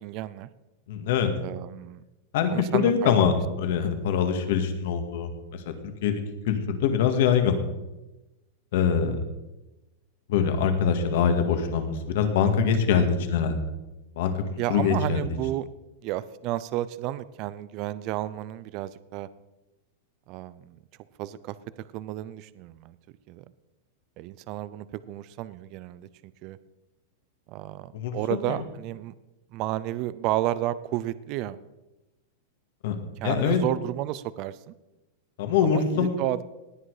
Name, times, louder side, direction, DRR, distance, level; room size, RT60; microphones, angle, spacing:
voice 1, 0.0-0.5 1.4-2.0 2.5-3.1 12.9-13.2 14.6-15.7 16.0-19.3 20.3-20.7 21.2-21.5 21.9-22.9 23.3-23.4 24.2-26.1 26.4-26.6 27.5-29.1 29.5-31.6 33.2-34.5 35.6-36.4, right 14 dB, 35° right, 16 dB, 0.5 m, -32 dB
voice 2, 0.9-1.3 2.3-5.7 6.0-7.6 8.7-9.2 10.3-13.6 14.2-14.4 14.7-15.4 27.9-28.1 28.5-28.6 32.8-33.0 33.2-33.6 35.4-36.2, left 7 dB, 60° left, 7 dB, 2.2 m, -24 dB
18.0 x 9.9 x 4.9 m, 1.0 s
supercardioid pair, 165°, 0 cm